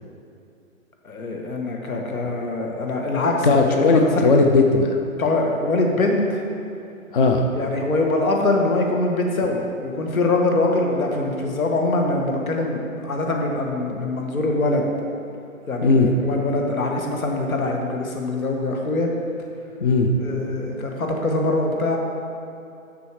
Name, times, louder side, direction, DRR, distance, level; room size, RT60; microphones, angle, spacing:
voice 1, 1.0-4.3 5.2-6.4 7.5-14.9 15.7-19.1 20.2-22.0, left 2 dB, 85° left, 1 dB, 1.5 m, -23 dB
voice 2, 3.4-4.9 7.1-7.4 15.8-16.1 19.8-20.2, left 3 dB, 40° left, 3 dB, 0.5 m, -17 dB
6.8 x 6.4 x 4.6 m, 2.7 s
hypercardioid pair, 150°, 41 cm